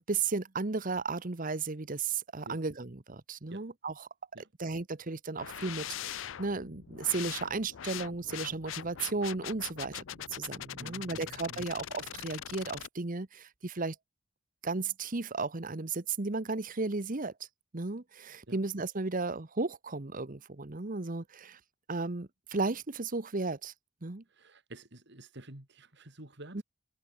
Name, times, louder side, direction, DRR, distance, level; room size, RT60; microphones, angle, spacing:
voice 1, 0.0-4.1 4.6-10.0 10.3-14.0 14.6-17.3 17.7-21.6 21.9-23.7 24.0-24.2 26.5-26.6, right 3 dB, 45° right, 1.1 m, -34 dB
sound 1, 5.4-12.9, left 11 dB, 70° left, 0.5 m, -42 dB
voice 2, 10.8-11.7 18.5-18.6 24.3-26.6, right 1 dB, 60° right, 3.7 m, -49 dB
head